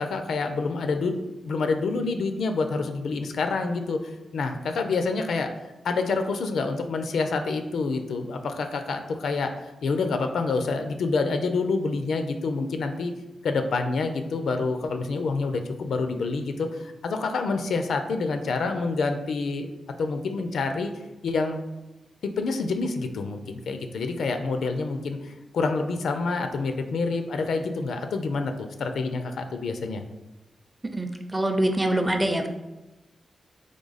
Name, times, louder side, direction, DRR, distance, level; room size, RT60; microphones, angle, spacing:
voice 1, 0.0-5.5 5.8-9.5 9.8-13.1 13.4-19.7 20.0-20.9 21.2-21.6 22.2-30.0, left 4 dB, 85° left, 6 dB, 0.4 m, -27 dB
voice 2, 30.9-32.5, right 1 dB, 15° right, 5 dB, 0.5 m, -24 dB
3.7 x 3.1 x 4.0 m, 1.0 s
wide cardioid pair, 105°, 0 cm